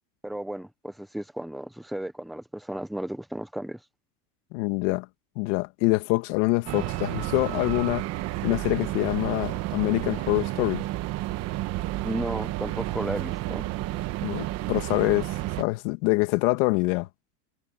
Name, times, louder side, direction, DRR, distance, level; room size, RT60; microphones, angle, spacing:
voice 1, 0.2-3.8 12.0-13.7, right 1 dB, ahead, 0.4 m, -34 dB
voice 2, 4.5-5.1 5.4-8.1 8.4-10.8 14.2-17.1, left 23 dB, 50° left, 1.9 m, -25 dB
sound 1, 6.7-15.6, right 17 dB, 30° right, 1.1 m, -31 dB
supercardioid pair, 160°, 47 cm